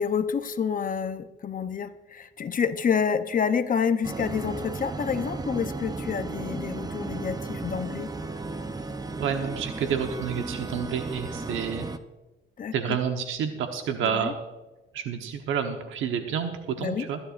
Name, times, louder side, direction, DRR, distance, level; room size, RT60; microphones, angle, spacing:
voice 1, 0.0-8.1 12.6-13.0 14.0-14.3 16.8-17.1, left 6 dB, 45° left, 10 dB, 0.8 m, -28 dB
sound 1, 4.0-12.0, right 3 dB, 20° right, 0.7 m, -35 dB
voice 2, 9.2-11.9 12.7-14.3 14.9-17.2, right 7 dB, 85° right, 6 dB, 1.1 m, -29 dB
25.0 x 10.0 x 2.5 m, 1.1 s
cardioid pair, 90°, 20 cm